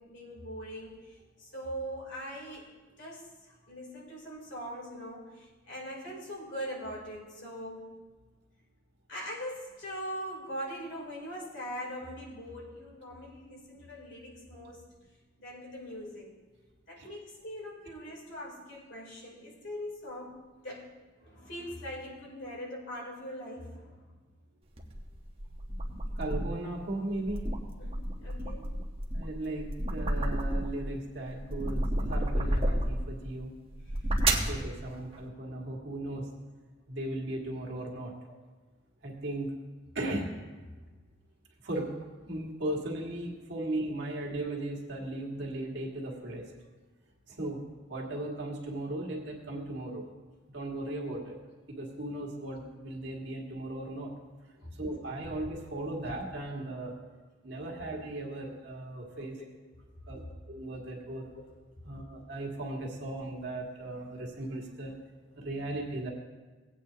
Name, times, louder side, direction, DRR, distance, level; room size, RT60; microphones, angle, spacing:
voice 1, 0.0-2.7 3.0-7.9 9.1-14.8 15.4-16.4 16.9-20.9 21.2-24.0 27.8-28.7 35.6-35.8 38.3-38.4 54.6-54.7 55.5-55.7 55.9-56.0 57.7-57.9 59.1-59.5 61.3-61.4, equal, 65° left, -4 dB, 3.1 m, -42 dB
sound 1, 24.8-26.6 27.1-30.9 31.3-33.1 33.7-34.6, right 1 dB, 30° right, 1.0 m, -31 dB
voice 2, 26.2-27.5 29.1-33.5 34.5-36.2 36.9-38.1 39.0-39.5 40.0-40.5 41.6-41.9 42.3-46.5 47.3-47.6 47.9-50.0 50.5-51.4 51.7-54.1 54.8-56.9 57.4-59.3 60.1-60.2 60.5-61.3 61.8-64.9 65.4-66.1, right 1 dB, 60° right, -1 dB, 1.9 m, -37 dB
17.5 x 8.7 x 2.8 m, 1.3 s
head